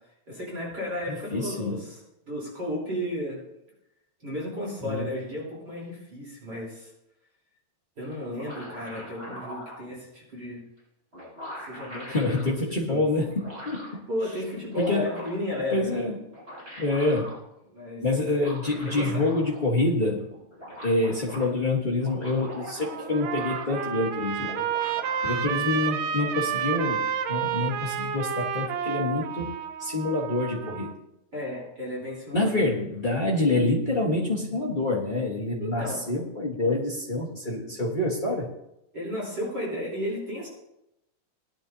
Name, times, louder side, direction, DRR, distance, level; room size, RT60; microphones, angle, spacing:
voice 1, 0.3-2.0 2.3-3.4 4.2-6.9 8.0-10.6 11.5-12.5 12.9-13.1 14.1-16.0 17.7-18.1 18.8-19.3 31.3-32.7 35.6-36.0 38.9-40.5, left 1 dB, 35° right, -5 dB, 4.0 m, -33 dB
voice 2, 1.1-1.8 4.8-5.1 12.1-14.0 14.8-15.1 15.7-16.2 16.8-17.3 18.0-20.3 20.8-24.7 25.2-29.5 29.8-30.9 32.3-38.5, left 2 dB, 55° left, -3 dB, 0.5 m, -27 dB
sound 1, 8.1-9.8 10.8-10.9 11.1-12.5 13.2-14.0 14.5-15.5 16.2-17.4 18.3-19.7 20.0-20.1 20.3-21.5 21.9-24.1 24.4-25.4, equal, 20° right, 5.9 m, -42 dB
Trumpet, 22.5-30.9, right 8 dB, 80° right, 2.0 m, -30 dB
19.0 x 11.0 x 2.7 m, 0.86 s
omnidirectional pair, 3.3 m